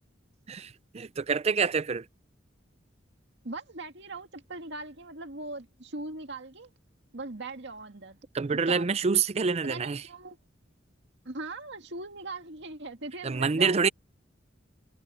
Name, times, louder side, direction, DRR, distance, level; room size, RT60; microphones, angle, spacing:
voice 1, 0.5-2.0 8.3-10.0 13.2-13.9, right 5 dB, 35° right, 0.5 m, -26 dB
voice 2, 3.4-6.7 7.1-8.2 8.5-8.9 9.6-10.4 11.3-13.8, right 2 dB, 65° right, 2.1 m, -40 dB
head